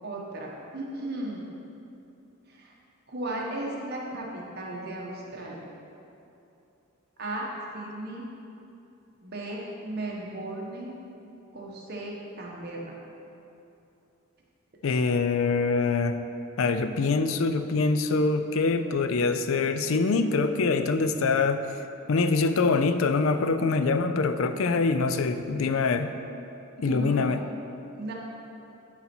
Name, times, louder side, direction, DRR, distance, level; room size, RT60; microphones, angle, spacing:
voice 1, 0.0-1.4 2.6-2.7 3.1-5.6 7.2-7.5 7.7-8.2 9.2-10.9 11.5-12.9 26.9-27.4 27.9-28.1, right 1 dB, 50° right, -3 dB, 1.2 m, -35 dB
voice 2, 14.8-16.2 16.6-21.6 22.1-26.1 26.8-27.4, left 4 dB, 70° left, 9 dB, 0.4 m, -24 dB
11.5 x 4.2 x 4.4 m, 2.8 s
head